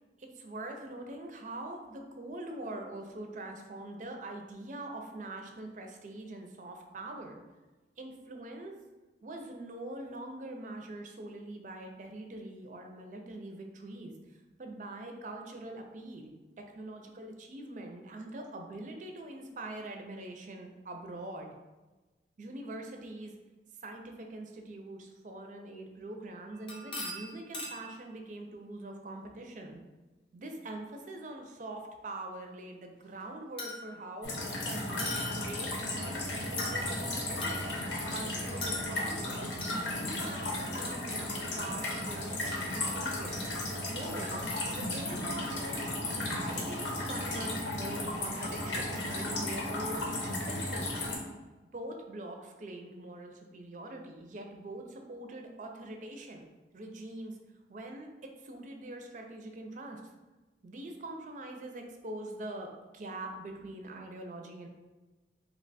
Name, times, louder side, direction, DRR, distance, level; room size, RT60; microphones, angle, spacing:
voice 1, 0.2-7.4 8.0-8.8 9.2-16.3 16.7-21.5 22.4-23.3 23.8-29.8 30.3-37.7 38.1-43.3 43.9-45.9 46.1-50.1 50.4-51.0 51.7-56.5 56.7-57.4 57.7-60.0 60.6-64.7, right 2 dB, 45° right, 3 dB, 0.4 m, -43 dB
sound 1, 26.5-27.9 31.4-31.5 33.6-34.1 35.0-35.7 36.6-37.0 37.4-38.0 38.6-39.2 39.6-39.8, left 2 dB, 30° left, 0.5 m, -40 dB
sound 2, 34.2-51.2, left 1 dB, 75° left, 0.7 m, -35 dB
2.9 x 2.2 x 3.9 m, 1.2 s
head